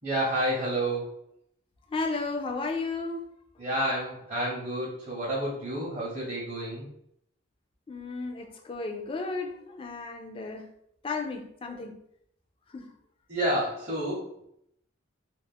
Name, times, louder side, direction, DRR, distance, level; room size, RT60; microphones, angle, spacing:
voice 1, 0.0-1.3 3.6-6.9 13.3-14.3, right 1 dB, 35° right, 0.7 m, -30 dB
voice 2, 1.9-3.2 7.9-10.7 11.0-12.0 12.7-12.9, left 3 dB, 30° left, 0.3 m, -34 dB
2.3 x 2.0 x 3.3 m
head